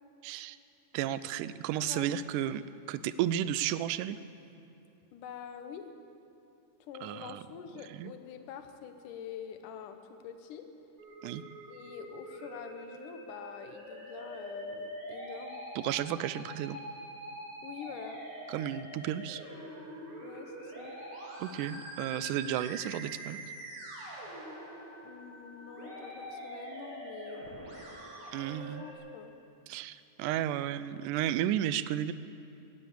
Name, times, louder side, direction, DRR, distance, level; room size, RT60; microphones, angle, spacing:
voice 1, 0.2-0.6 0.9-4.2 7.0-7.4 8.0-8.1 11.2-11.4 15.8-16.8 18.5-19.4 21.4-23.4 28.3-28.9 29.7-32.1, right 11 dB, 85° right, 15 dB, 2.1 m, -33 dB
voice 2, 5.1-5.9 6.8-10.7 11.7-15.7 17.6-18.2 20.2-21.0 25.0-27.6 28.5-29.3, left 8 dB, 90° left, 7 dB, 2.5 m, -46 dB
Musical instrument, 11.0-29.0, right 1 dB, 45° right, 3.6 m, -44 dB
17.0 x 10.0 x 8.3 m, 2.7 s
omnidirectional pair, 3.6 m